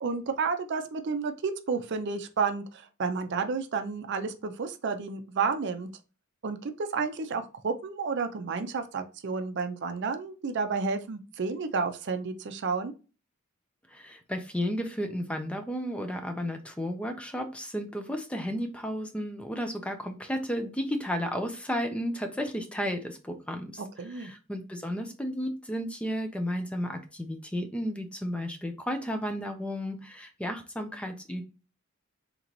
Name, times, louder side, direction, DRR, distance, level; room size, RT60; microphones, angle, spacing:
voice 1, 0.0-5.9 6.4-12.9 23.8-24.3, right 4 dB, 55° right, 7 dB, 0.5 m, -31 dB
voice 2, 13.9-23.8 24.1-31.4, equal, 5° left, 6 dB, 0.5 m, -33 dB
3.8 x 2.9 x 2.9 m, 0.33 s
head